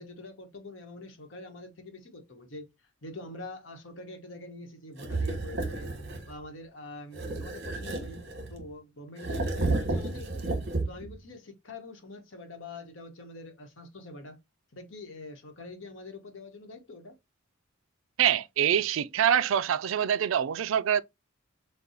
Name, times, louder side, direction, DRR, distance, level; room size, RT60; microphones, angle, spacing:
voice 1, 0.0-2.7 3.0-5.9 6.3-8.2 8.5-10.5 10.9-14.4 14.7-17.2, left 2 dB, 70° left, 1.1 m, -45 dB
sound 1, 5.0-6.3 7.1-8.7 9.2-11.2, right 2 dB, 60° right, 1.2 m, -32 dB
voice 2, 18.2-21.0, right 9 dB, 85° right, 0.4 m, -25 dB
6.6 x 2.3 x 2.8 m
head